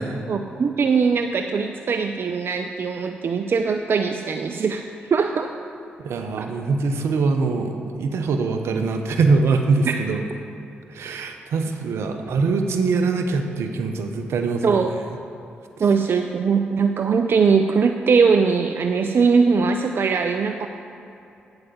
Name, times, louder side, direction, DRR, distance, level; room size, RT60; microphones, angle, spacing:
voice 1, 0.3-4.9 5.1-5.5 6.4-6.5 9.9-10.0 14.6-14.9 15.8-20.7, right 5 dB, 55° right, 6 dB, 0.5 m, -20 dB
voice 2, 6.0-10.2 10.9-14.9, right 4 dB, 75° right, 6 dB, 0.9 m, -23 dB
9.0 x 8.0 x 7.1 m, 2.8 s
supercardioid pair, 45°, 5 cm